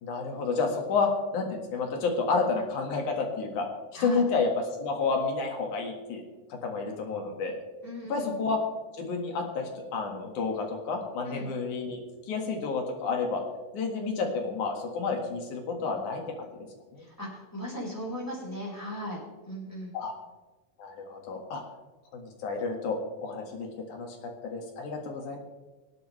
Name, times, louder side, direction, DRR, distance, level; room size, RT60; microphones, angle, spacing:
voice 1, 0.0-3.7 3.9-4.5 4.8-6.2 6.5-7.6 8.1-8.6 9.0-12.0 12.3-13.4 13.7-16.7 16.9-17.0 19.9-20.1 20.8-21.6 22.1-25.4, left 4 dB, 75° left, 2 dB, 3.3 m, -30 dB
voice 2, 3.9-4.2 7.8-8.3 11.2-11.5 17.0-19.2 19.4-20.0, equal, 5° left, -5 dB, 4.9 m, -37 dB
24.5 x 8.5 x 3.3 m, 1.2 s
omnidirectional pair, 3.5 m